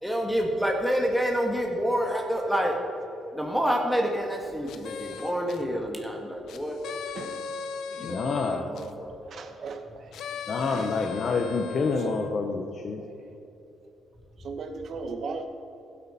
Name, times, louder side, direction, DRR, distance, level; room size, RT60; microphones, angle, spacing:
voice 1, 0.0-2.7 3.3-6.8 8.0-8.4 8.7-9.5, equal, ahead, 1 dB, 1.6 m, -28 dB
sound 1, 4.7-5.6 6.5-8.9 10.1-12.3, left 6 dB, 75° left, 0.7 m, -38 dB
voice 2, 8.0-8.7 10.5-13.0, left 4 dB, 55° left, 3 dB, 0.9 m, -28 dB
voice 3, 8.7-10.2 10.7-10.9 12.0-12.2 14.4-15.5, right 4 dB, 60° right, 6 dB, 1.1 m, -38 dB
15.5 x 8.6 x 4.3 m, 3.0 s
cardioid pair, 90°, 0 cm